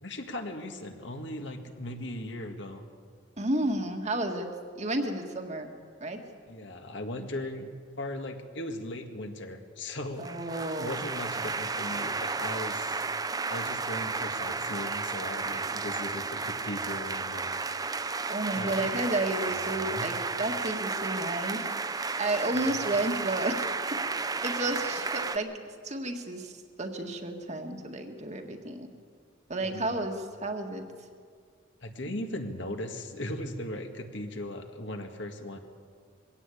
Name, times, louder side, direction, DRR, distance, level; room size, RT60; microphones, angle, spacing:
voice 1, 0.0-2.8 6.5-7.7 8.0-10.3 10.6-13.0 13.5-17.7 18.5-18.9 19.5-20.1 29.6-29.9 31.8-35.6, left 1 dB, 60° left, 5 dB, 1.9 m, -38 dB
voice 2, 3.4-4.5 4.8-5.7 6.0-6.2 10.2-11.0 18.3-21.7 21.9-23.6 23.9-24.0 24.4-25.5 25.8-28.9 29.5-30.2 30.4-30.8, right 2 dB, 35° right, 4 dB, 1.8 m, -31 dB
sound 1, 10.2-25.4, right 4 dB, 20° right, 0.6 m, -33 dB
22.0 x 16.5 x 8.5 m, 2.1 s
head